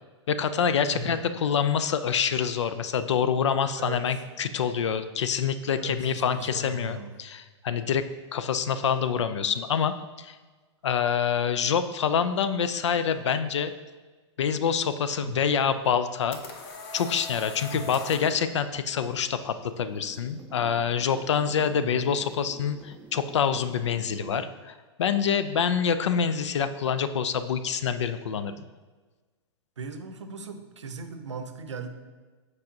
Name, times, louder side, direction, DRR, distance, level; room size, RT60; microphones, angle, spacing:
voice 1, 0.3-8.0 8.3-10.4 10.8-13.7 14.4-16.4 16.9-28.6, left 7 dB, 75° left, 12 dB, 0.4 m, -26 dB
voice 2, 0.9-1.2 3.8-4.0 5.8-7.2 15.2-15.4 17.7-17.9 21.7-22.1 29.8-31.9, right 3 dB, 85° right, 7 dB, 0.7 m, -37 dB
sound 1, 15.9-18.4, left 3 dB, 40° left, 0.9 m, -40 dB
sound 2, 19.4-24.4, right 3 dB, 10° right, 0.4 m, -48 dB
7.4 x 4.7 x 2.8 m, 1.3 s
hypercardioid pair, 105°, 15 cm